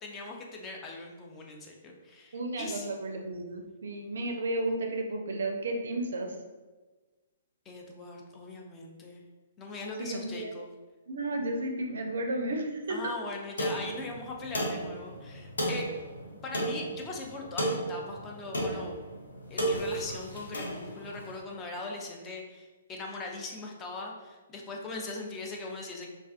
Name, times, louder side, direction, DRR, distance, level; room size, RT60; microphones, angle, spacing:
voice 1, 0.0-2.9 7.7-9.2 9.6-10.7 12.9-15.9 16.4-19.0 19.5-26.1, left 3 dB, 20° left, 0 dB, 0.4 m, -40 dB
voice 2, 2.3-6.3 10.0-10.5 11.1-13.0 25.2-25.3, right 2 dB, 70° right, 2 dB, 0.4 m, -33 dB
sound 1, 13.6-21.3, right 1 dB, 80° left, 0.5 m, -34 dB
2.4 x 2.3 x 2.4 m, 1.2 s
figure-of-eight pair, 125°, 0 cm